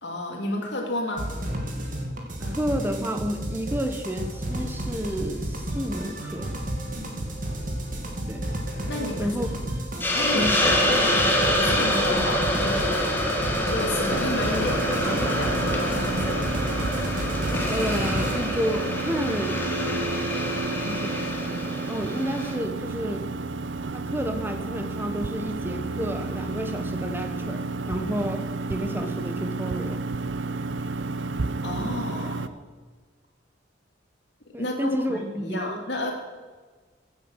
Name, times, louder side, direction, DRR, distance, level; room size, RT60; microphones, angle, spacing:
voice 1, 0.0-1.3 6.9-7.3 8.9-9.4 10.1-11.3 11.5-13.2 13.7-16.4 31.6-32.5 34.6-36.1, left 1 dB, 65° left, 2 dB, 2.4 m, -31 dB
sound 1, 1.2-18.3, right 1 dB, 45° right, 2.3 m, -32 dB
voice 2, 2.4-6.6 8.3-8.5 9.2-9.5 10.3-10.6 17.7-19.7 20.8-23.3 23.9-30.0 34.5-35.8, equal, 10° right, 7 dB, 1.2 m, -31 dB
Hiss, 10.0-22.5, left 1 dB, 10° left, 2.0 m, -26 dB
sound 2, 14.1-32.5, right 3 dB, 75° right, 0.7 m, -31 dB
15.5 x 8.6 x 6.3 m, 1.4 s
head